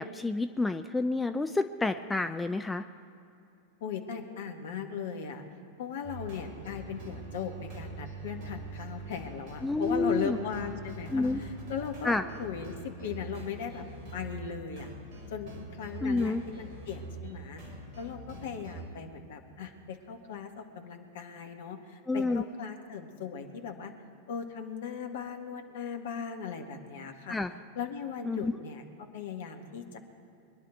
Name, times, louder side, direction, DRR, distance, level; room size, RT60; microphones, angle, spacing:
voice 1, 0.0-2.8 9.6-10.4 11.1-11.4 12.0-12.2 16.0-16.4 22.1-22.4 27.3-27.5 28.2-28.5, left 3 dB, 10° left, 9 dB, 0.5 m, -29 dB
voice 2, 3.8-5.4 5.8-12.1 12.4-13.8 14.1-14.9 15.3-17.6 18.0-23.9 24.3-27.4 27.7-28.8 29.1-30.0, left 7 dB, 60° left, 5 dB, 1.6 m, -38 dB
sound 1, 6.0-18.9, right 2 dB, 40° right, 3.7 m, -44 dB
23.5 x 11.0 x 4.6 m, 2.8 s
figure-of-eight pair, 90°, 0 cm